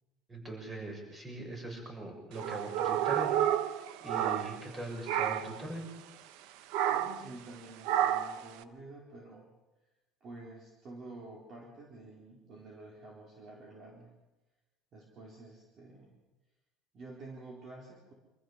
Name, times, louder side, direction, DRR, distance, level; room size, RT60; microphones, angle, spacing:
voice 1, 0.3-3.6 4.0-5.9, right 2 dB, 20° right, 2 dB, 7.2 m, -41 dB
sound 1, 2.3-4.8 5.1-5.6 6.7-7.3 7.8-8.4, right 11 dB, 80° right, 1.0 m, -30 dB
voice 2, 6.9-9.5 10.2-14.1 14.9-16.2 16.9-18.1, right 2 dB, 40° right, -1 dB, 4.3 m, -49 dB
26.0 x 14.5 x 7.4 m, 1.1 s
cardioid pair, 135°, 0 cm